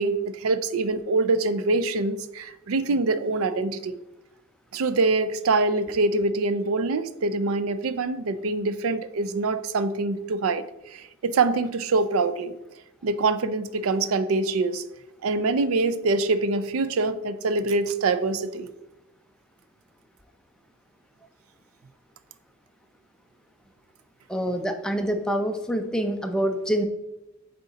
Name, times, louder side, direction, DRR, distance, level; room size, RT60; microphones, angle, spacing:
voice 1, 0.0-4.0 4.7-10.7 10.9-12.5 13.0-14.8 15.2-18.7, right 3 dB, 80° right, 13 dB, 0.4 m, -24 dB
voice 2, 24.3-26.8, equal, 5° left, 5 dB, 0.5 m, -26 dB
6.5 x 3.9 x 4.0 m, 0.94 s
head